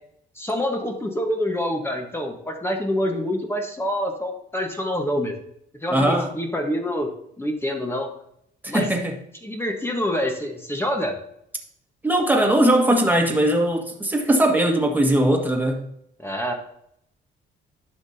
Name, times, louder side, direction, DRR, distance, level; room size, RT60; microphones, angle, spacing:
voice 1, 0.4-5.4 5.8-7.1 7.4-8.1 8.7-8.9 9.4-11.1 16.2-16.5, equal, 10° left, 1.3 m, -26 dB
voice 2, 5.9-6.3 8.6-9.1 12.0-15.8, right 1 dB, 10° right, 1.7 m, -20 dB
10.5 x 6.0 x 2.8 m
cardioid pair, 90°, 20 cm